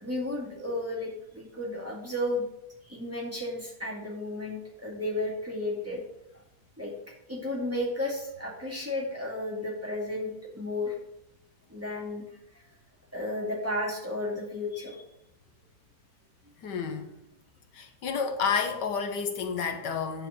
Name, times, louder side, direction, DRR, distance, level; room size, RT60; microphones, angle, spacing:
voice 1, 0.0-2.4 2.9-6.0 6.8-6.9 7.3-10.9 11.7-12.2 12.5-12.6 13.1-15.0, left 1 dB, 10° right, 2.0 m, -33 dB
voice 2, 16.6-17.1 17.7-20.3, left 6 dB, 85° left, 1.6 m, -30 dB
9.3 x 4.7 x 6.4 m
omnidirectional pair, 1.8 m